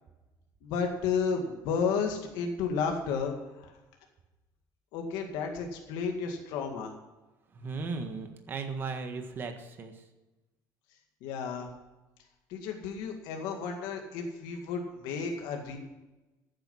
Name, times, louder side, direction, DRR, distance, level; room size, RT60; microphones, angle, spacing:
voice 1, 0.6-3.3 4.9-6.9 11.2-11.7 12.5-15.8, left 5 dB, 80° left, 3 dB, 2.1 m, -32 dB
voice 2, 7.5-10.1, right 4 dB, 30° right, 5 dB, 1.5 m, -37 dB
15.0 x 9.1 x 5.6 m, 1.1 s
cardioid pair, 165°, 7 cm